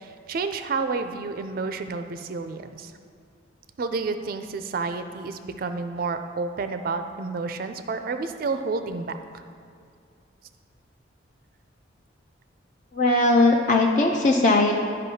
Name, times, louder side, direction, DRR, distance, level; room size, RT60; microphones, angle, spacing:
voice 1, 0.0-2.9 3.8-9.4, right 4 dB, 50° right, 8 dB, 0.3 m, -30 dB
voice 2, 12.9-14.7, left 2 dB, 40° left, 0 dB, 0.4 m, -19 dB
12.0 x 5.2 x 2.8 m, 2.4 s
head